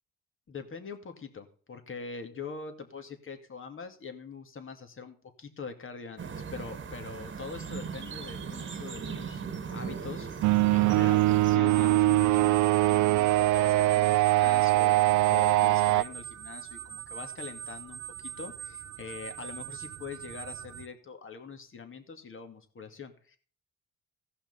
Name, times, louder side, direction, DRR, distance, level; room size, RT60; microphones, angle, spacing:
voice 1, 0.5-10.3 10.7-23.4, left 5 dB, 45° left, 7 dB, 2.3 m, -43 dB
sound 1, 6.2-11.6, right 6 dB, 40° right, 1.4 m, -38 dB
sound 2, 10.4-16.0, right 17 dB, 75° right, 0.5 m, -22 dB
sound 3, 11.7-20.9, right 10 dB, 55° right, 1.3 m, -42 dB
16.5 x 5.7 x 5.5 m, 0.43 s
cardioid pair, 90°, 30 cm